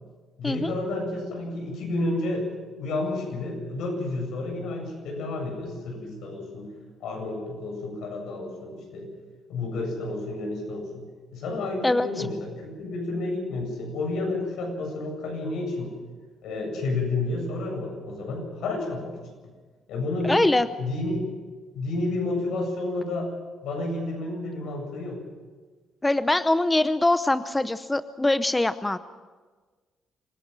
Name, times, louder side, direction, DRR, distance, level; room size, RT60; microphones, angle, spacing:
voice 1, 0.4-6.7 7.0-9.1 9.5-16.0 16.4-19.2 19.9-20.5 20.8-21.2 21.7-23.3 23.6-25.2, left 2 dB, 85° left, 2 dB, 7.9 m, -30 dB
voice 2, 20.2-20.7 26.0-29.0, left 2 dB, 15° left, 12 dB, 0.7 m, -23 dB
26.5 x 16.5 x 7.6 m, 1.4 s
cardioid pair, 90°, 0 cm